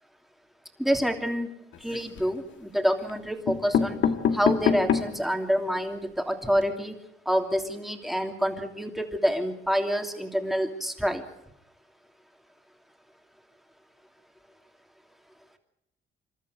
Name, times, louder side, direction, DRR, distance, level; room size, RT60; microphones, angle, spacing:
voice 1, 0.8-1.5 1.8-4.0 4.3-6.9 7.2-11.2, equal, ahead, 4 dB, 2.9 m, -27 dB
sound 1, 1.7-2.4 3.1-3.2 3.5-5.3 5.8-5.9 6.1-6.2 6.4-6.6, left 7 dB, 70° left, 1.6 m, -26 dB
27.5 x 13.0 x 8.3 m, 0.83 s
cardioid pair, 90°, 20 cm